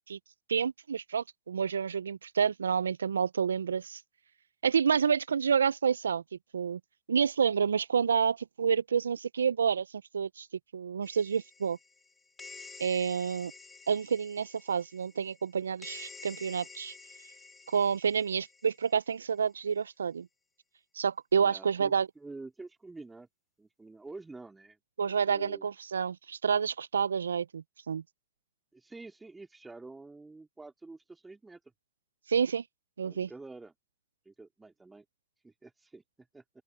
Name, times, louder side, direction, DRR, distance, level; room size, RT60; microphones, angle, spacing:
voice 1, 0.5-4.0 4.6-6.2 6.5-6.8 7.1-9.9 10.1-10.5 10.7-11.8 12.8-13.5 13.9-16.9 17.7-20.3 21.0-22.1 25.0-28.0 32.3-32.6 33.0-33.3, right 6 dB, 80° right, 0.7 m, -29 dB
sound 1, 11.0-19.2, left 4 dB, 15° left, 2.6 m, -51 dB
voice 2, 21.4-23.3 23.6-24.8 25.0-25.7 28.7-31.6 33.0-33.7 34.2-35.0 35.4-36.0 36.3-36.4, right 3 dB, 10° right, 3.0 m, -48 dB
open air
hypercardioid pair, 100°, 0 cm